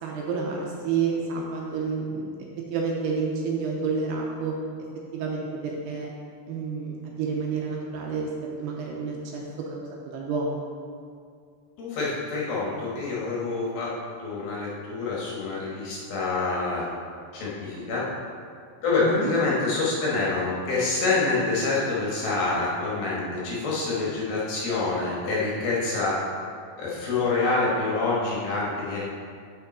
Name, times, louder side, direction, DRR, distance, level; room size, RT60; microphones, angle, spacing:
voice 1, 0.0-2.4 2.7-4.5 5.1-6.1 6.5-8.3 8.6-9.4 9.7-10.7 19.0-19.3, right 5 dB, 80° right, -2 dB, 2.6 m, -29 dB
voice 2, 11.8-13.9 14.2-16.9 17.3-18.0 18.8-26.2 26.8-29.0, left 3 dB, 65° left, -6 dB, 2.8 m, -26 dB
8.2 x 6.6 x 4.1 m, 2.2 s
omnidirectional pair, 5.1 m